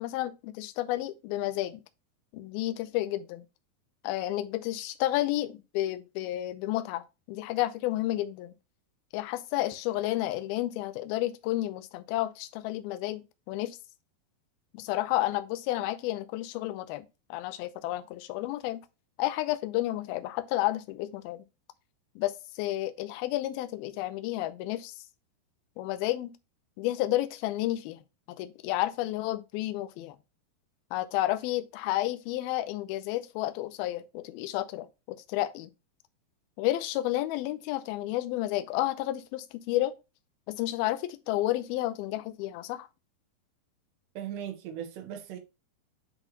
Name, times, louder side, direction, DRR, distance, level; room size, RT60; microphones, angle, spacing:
voice 1, 0.0-1.8 2.3-3.5 4.0-8.5 9.1-13.2 13.5-13.8 14.7-18.8 19.2-21.4 22.2-25.0 25.8-26.3 26.8-28.0 28.4-30.2 30.9-35.7 36.6-39.9 40.5-42.9, left 15 dB, 80° left, 2.4 m, -31 dB
voice 2, 44.2-45.4, right 10 dB, 90° right, 3.3 m, -38 dB
9.9 x 4.0 x 3.0 m
omnidirectional pair, 4.7 m